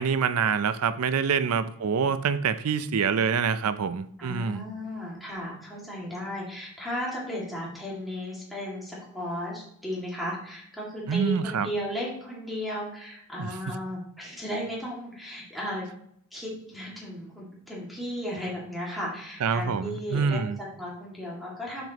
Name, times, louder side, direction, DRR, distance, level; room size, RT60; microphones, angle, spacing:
voice 1, 0.0-4.6 11.1-11.7 13.4-13.5 19.4-20.6, right 6 dB, 85° right, 13 dB, 0.5 m, -26 dB
voice 2, 4.2-15.9 16.3-20.4 20.8-21.9, equal, ahead, -6 dB, 2.2 m, -35 dB
7.0 x 5.9 x 3.0 m, 0.70 s
head